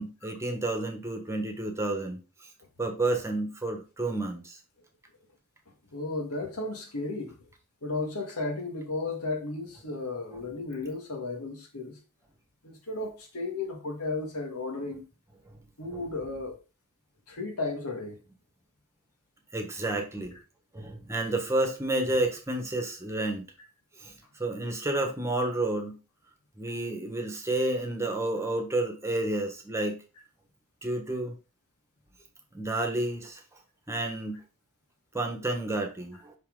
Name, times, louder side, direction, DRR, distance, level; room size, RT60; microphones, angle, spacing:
voice 1, 0.0-2.2 2.8-4.6 10.3-10.4 15.9-16.0 19.5-20.3 20.7-23.4 24.0-24.1 24.4-26.0 26.6-30.0 30.8-31.3 32.5-33.4 33.9-34.4 35.1-36.3, right 2 dB, 10° right, 1.3 m, -30 dB
voice 2, 5.9-7.3 7.8-12.0 12.6-15.0 15.8-16.6 17.3-18.2, left 3 dB, 85° left, 1.9 m, -34 dB
5.8 x 5.7 x 3.8 m
head